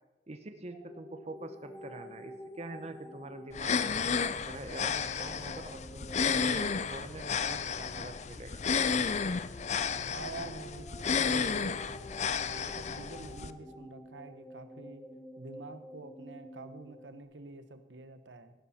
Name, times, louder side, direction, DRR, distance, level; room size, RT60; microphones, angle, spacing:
voice 1, 0.3-3.7 4.4-8.6, right 2 dB, 35° right, 8 dB, 0.9 m, -45 dB
sound 1, 0.7-7.8 8.7-17.2, equal, 15° left, 1.9 m, -50 dB
sound 2, 3.5-13.5, left 6 dB, 40° left, 0.5 m, -32 dB
voice 2, 10.0-12.0 12.5-15.0 15.4-18.5, right 3 dB, 85° right, 9 dB, 1.1 m, -47 dB
15.5 x 11.5 x 4.3 m, 1.1 s
head